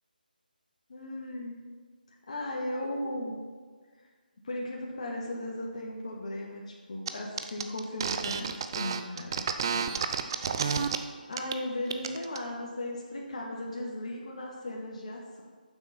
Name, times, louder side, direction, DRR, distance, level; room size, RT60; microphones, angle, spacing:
voice 1, 0.9-1.6 2.3-3.4 4.4-9.9 11.3-15.4, left 1 dB, 45° left, -1 dB, 1.8 m, -36 dB
sound 1, 7.1-7.2 7.4-11.0 11.3-11.6 11.9-12.4, right 6 dB, 30° right, 0.5 m, -30 dB
9.3 x 7.3 x 5.7 m, 1.5 s
figure-of-eight pair, 150°, 5 cm